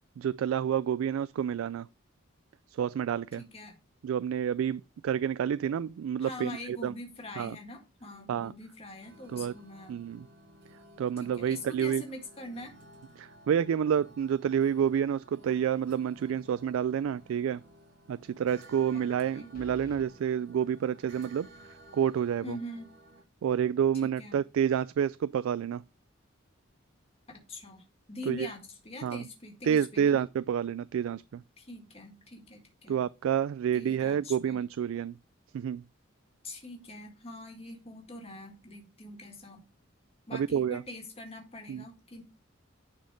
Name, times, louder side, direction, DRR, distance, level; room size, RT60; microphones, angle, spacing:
voice 1, 0.2-1.9 2.7-3.4 4.0-6.9 7.4-7.6 8.3-8.5 9.3-9.5 9.9-10.3 11.0-12.0 13.2-17.6 18.1-21.5 21.9-22.6 23.4-25.8 28.3-28.5 29.0-29.3 29.6-31.4 32.9-35.2 35.5-35.8 40.3-40.8 41.7-41.8, right 8 dB, 85° right, 0.3 m, -29 dB
voice 2, 3.3-3.8 6.2-10.0 11.2-12.7 18.9-19.5 22.4-22.9 24.0-24.4 27.3-30.2 31.6-33.0 33.7-34.6 36.4-39.6 40.3-42.2, left 1 dB, 30° left, 1.8 m, -44 dB
sound 1, 9.0-23.2, right 1 dB, 60° right, 2.4 m, -55 dB
sound 2, 17.2-17.3 19.5-20.1, equal, 45° left, 1.7 m, -50 dB
10.0 x 4.3 x 4.7 m
head